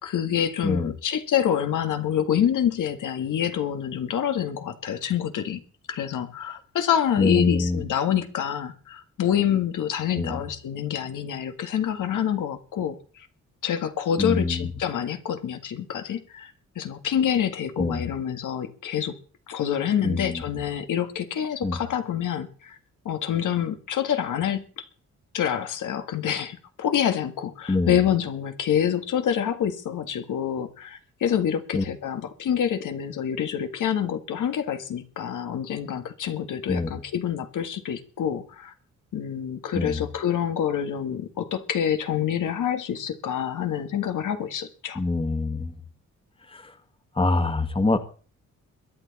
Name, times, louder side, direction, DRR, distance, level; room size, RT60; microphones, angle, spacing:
voice 1, 0.0-5.6 5.9-13.3 13.6-19.1 19.5-22.8 23.0-24.8 25.3-38.7 39.1-45.0, left 9 dB, 80° left, 7 dB, 1.8 m, -27 dB
voice 2, 7.2-7.8 10.2-10.4 14.2-14.7 17.8-18.1 20.0-20.4 21.6-21.8 27.7-27.9 31.7-31.8 36.7-36.9 39.7-40.0 44.9-45.7 46.5-46.7 47.2-48.0, left 2 dB, 15° left, 9 dB, 1.6 m, -25 dB
22.5 x 9.6 x 4.2 m, 0.40 s
cardioid pair, 90°, 30 cm